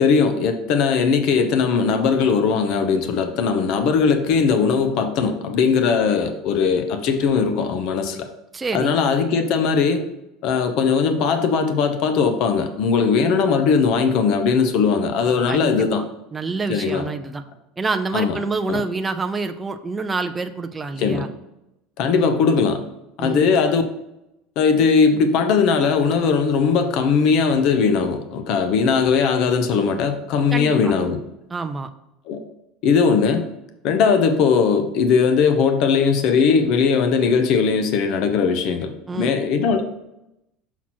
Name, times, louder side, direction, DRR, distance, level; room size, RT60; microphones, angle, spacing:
voice 1, 0.0-8.3 8.7-10.0 10.4-16.0 16.7-17.0 18.1-18.3 18.7-18.8 21.0-21.3 22.0-22.8 23.2-23.8 24.6-31.2 32.3-32.4 32.8-33.5 33.8-39.8, left 5 dB, 50° left, 7 dB, 0.9 m, -19 dB
voice 2, 8.5-9.0 15.5-15.8 16.3-17.4 17.8-21.3 22.1-22.5 23.2-23.5 30.5-30.9 31.5-31.9 39.1-39.4, right 4 dB, 15° right, 6 dB, 0.4 m, -27 dB
6.1 x 5.8 x 4.4 m, 0.88 s
cardioid pair, 155°, 0 cm